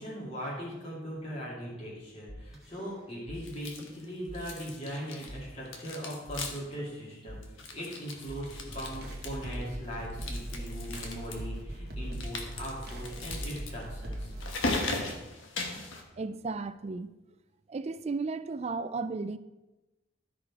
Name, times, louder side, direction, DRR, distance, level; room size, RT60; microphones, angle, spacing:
voice 1, 0.0-14.3, equal, 30° left, 2.4 m, -40 dB
sound 1, 2.3-3.4 3.7-3.9 4.3-4.4 4.9-5.9 6.3-10.3, equal, ahead, 2.1 m, -48 dB
sound 2, 3.4-4.1 4.3-5.4 5.7-6.8 7.0-7.1 7.4-9.6 10.1-11.3 12.1-16.0, left 2 dB, 75° left, 1.3 m, -38 dB
sound 3, 8.5-14.5, right 1 dB, 50° right, 1.1 m, -39 dB
voice 2, 16.2-17.1 17.7-19.4, right 4 dB, 30° right, 0.3 m, -34 dB
13.0 x 4.9 x 4.7 m
head